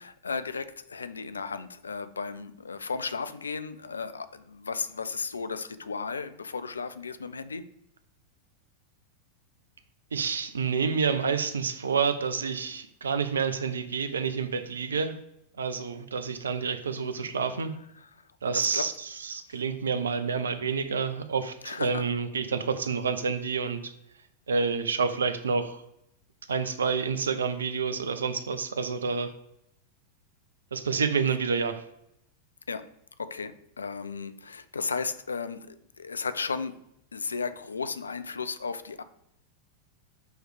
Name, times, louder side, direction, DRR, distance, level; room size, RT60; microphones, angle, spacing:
voice 1, 0.0-7.7 18.0-18.9 19.5-19.6 21.6-22.1 32.7-32.9 33.2-36.8 37.1-39.0, left 5 dB, 75° left, 12 dB, 0.4 m, -35 dB
voice 2, 10.1-15.2 15.6-17.7 18.4-23.9 24.5-25.8 26.5-29.3 30.7-31.8, right 5 dB, 70° right, 10 dB, 0.5 m, -28 dB
6.3 x 3.2 x 4.8 m, 0.77 s
figure-of-eight pair, 90°, 0 cm